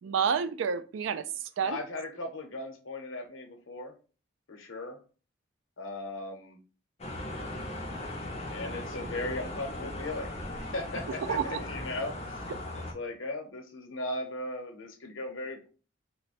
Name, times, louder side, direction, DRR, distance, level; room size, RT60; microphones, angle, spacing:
voice 1, 0.0-1.8 11.3-11.6, right 7 dB, 80° right, 0.3 m, -29 dB
voice 2, 1.6-4.0 4.5-5.0 5.8-6.6 8.5-10.4 10.7-15.7, left 2 dB, 85° left, 0.8 m, -37 dB
sound 1, 7.0-12.9, left 1 dB, 35° left, 0.7 m, -38 dB
3.0 x 2.1 x 4.1 m
head